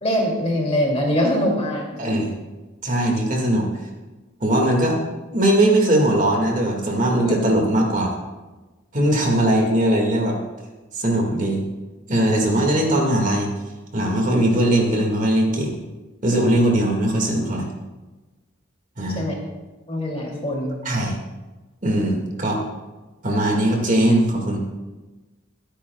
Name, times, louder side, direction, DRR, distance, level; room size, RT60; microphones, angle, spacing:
voice 1, 0.0-2.0 3.0-3.2 7.2-7.4 19.1-19.4 19.9-20.8, equal, 30° left, -1 dB, 2.6 m, -23 dB
voice 2, 2.0-2.4 2.8-3.7 4.4-5.0 5.3-8.2 8.9-10.4 10.9-11.6 12.1-13.5 13.9-15.7 16.2-17.7 19.0-19.2 20.8-21.2 21.8-22.6 23.2-24.6, right 1 dB, 40° right, 0 dB, 1.9 m, -20 dB
22.5 x 10.0 x 2.3 m, 1.2 s
head